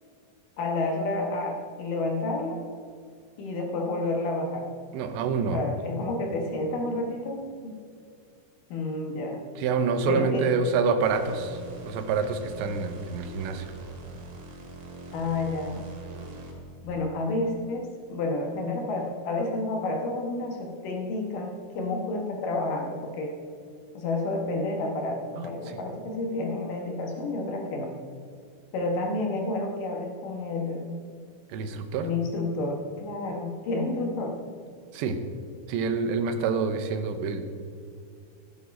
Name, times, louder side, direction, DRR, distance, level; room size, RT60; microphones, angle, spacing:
voice 1, 0.6-2.6 3.4-4.7 5.5-7.7 8.7-9.4 10.1-10.5 15.1-15.9 16.8-23.3 23.9-27.9 28.7-30.9 32.0-34.3, left 2 dB, 65° left, 2 dB, 2.2 m, -30 dB
voice 2, 4.9-5.6 9.6-13.7 25.4-25.8 31.5-32.1 34.9-35.2 35.7-37.4, right 5 dB, 80° right, 8 dB, 3.1 m, -27 dB
sound 1, 11.0-16.8, right 3 dB, 60° right, 3.3 m, -43 dB
15.5 x 9.5 x 5.2 m, 2.2 s
omnidirectional pair, 5.2 m